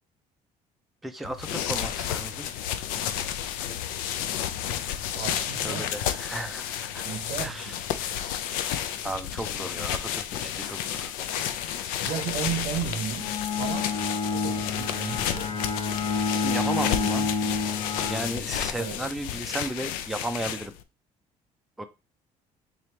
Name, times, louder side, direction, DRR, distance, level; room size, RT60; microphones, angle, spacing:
voice 1, 1.0-2.9 5.6-8.1 9.0-11.1 16.4-17.3 18.1-20.7 21.8-21.9, right 1 dB, ahead, 0.4 m, -35 dB
sound 1, 1.2-20.8, left 10 dB, 85° left, 0.4 m, -31 dB
voice 2, 5.1-6.0 7.0-7.8 12.0-13.3 13.6-14.0 14.3-15.6 18.8-19.0, right 9 dB, 70° right, 0.6 m, -34 dB
Bowed string instrument, 13.1-18.9, left 4 dB, 40° left, 0.8 m, -29 dB
3.8 x 2.9 x 3.2 m
cardioid pair, 125°, 14 cm